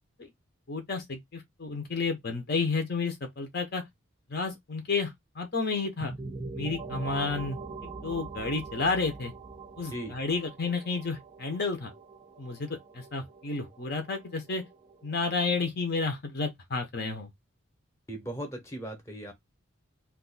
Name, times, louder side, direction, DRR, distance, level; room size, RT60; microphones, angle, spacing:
voice 1, 0.7-3.8 4.3-6.1 6.6-7.6 8.0-9.3 9.8-11.9 12.4-12.7 12.9-14.6 15.0-17.3, left 4 dB, 50° left, 0.7 m, -31 dB
sound 1, 6.0-15.6, right 4 dB, 20° right, 0.3 m, -43 dB
voice 2, 18.1-19.3, right 1 dB, 15° left, 0.8 m, -38 dB
2.5 x 2.3 x 3.8 m
head